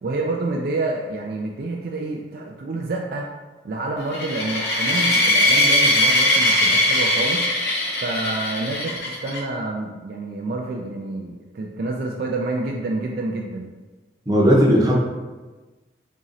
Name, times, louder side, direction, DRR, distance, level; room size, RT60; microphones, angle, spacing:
voice 1, 0.0-3.3 3.6-13.7, right 2 dB, 55° right, 0 dB, 0.3 m, -28 dB
sound 1, 4.1-9.4, left 1 dB, 65° left, 0.7 m, -20 dB
voice 2, 14.3-15.0, equal, 20° right, -4 dB, 0.7 m, -16 dB
3.0 x 2.7 x 3.7 m, 1.2 s
head